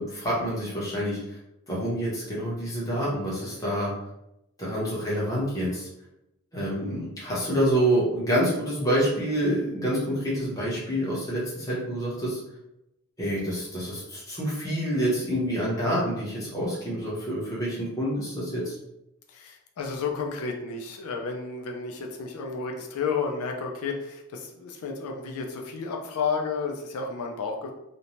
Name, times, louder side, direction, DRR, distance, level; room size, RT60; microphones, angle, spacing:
voice 1, 0.0-1.4 1.7-3.9 4.6-5.9 6.5-12.4 13.2-18.8, equal, 15° left, -7 dB, 0.8 m, -27 dB
voice 2, 19.3-27.7, left 5 dB, 80° left, 2 dB, 0.4 m, -32 dB
2.6 x 2.1 x 2.9 m, 0.87 s
head